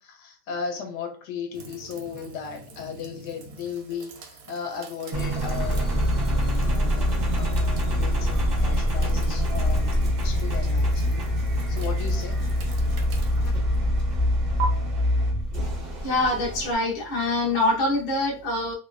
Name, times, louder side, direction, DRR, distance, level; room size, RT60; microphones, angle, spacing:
voice 1, 0.0-5.9 6.6-11.2 11.7-12.4, left 6 dB, 75° left, 1.2 m, -36 dB
sound 1, 1.5-14.6, right 6 dB, 85° right, 1.2 m, -43 dB
Engine, 5.1-16.7, equal, 70° right, 0.4 m, -24 dB
voice 2, 16.0-18.7, left 2 dB, 45° left, 0.8 m, -24 dB
3.1 x 2.1 x 2.3 m
omnidirectional pair, 1.8 m